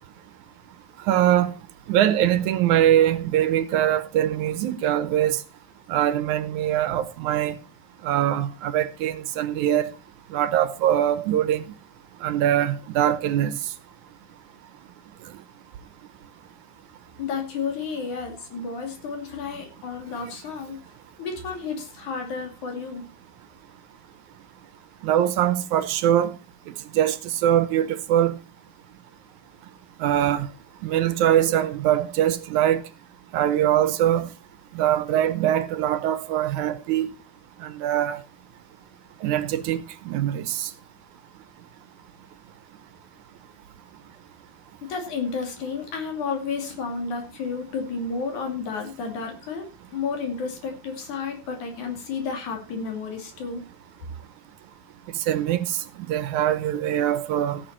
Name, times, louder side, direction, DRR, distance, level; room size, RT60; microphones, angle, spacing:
voice 1, 1.1-1.5 1.9-5.4 5.9-7.6 8.0-9.9 10.3-11.6 12.2-13.6 25.0-26.3 26.9-27.2 27.4-28.4 30.0-30.5 30.8-32.8 33.3-34.3 34.8-37.1 37.6-38.2 39.2-40.7 55.3-55.7 56.0-57.6, right 11 dB, 75° right, 2.2 m, -22 dB
voice 2, 17.2-20.8 21.2-23.1 44.8-53.7, left 5 dB, 70° left, 4.0 m, -31 dB
16.5 x 7.0 x 4.3 m
omnidirectional pair, 3.6 m